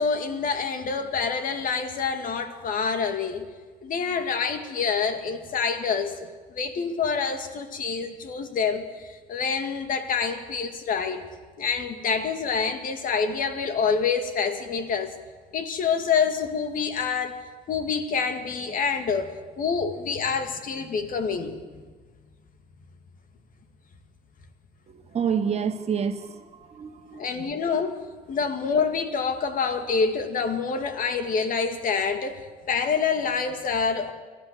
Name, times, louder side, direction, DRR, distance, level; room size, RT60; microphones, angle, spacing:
voice 1, 0.0-3.5 3.8-11.2 11.6-15.1 15.5-17.4 17.7-21.8 27.1-28.0 28.3-34.1, left 5 dB, 55° left, 8 dB, 2.1 m, -27 dB
voice 2, 24.9-27.5, right 7 dB, 40° right, 6 dB, 1.8 m, -29 dB
28.5 x 12.0 x 7.5 m, 1.4 s
cardioid pair, 110°, 17 cm